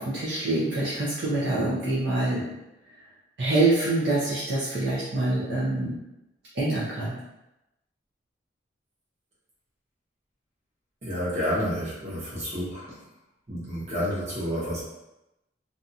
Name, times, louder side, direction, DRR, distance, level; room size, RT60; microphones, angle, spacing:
voice 1, 0.0-2.5 3.4-6.0 6.5-7.2, right 2 dB, 65° right, -8 dB, 0.6 m, -25 dB
voice 2, 11.0-13.0 13.5-14.8, equal, 35° right, -8 dB, 1.0 m, -30 dB
2.7 x 2.3 x 2.7 m, 0.92 s
head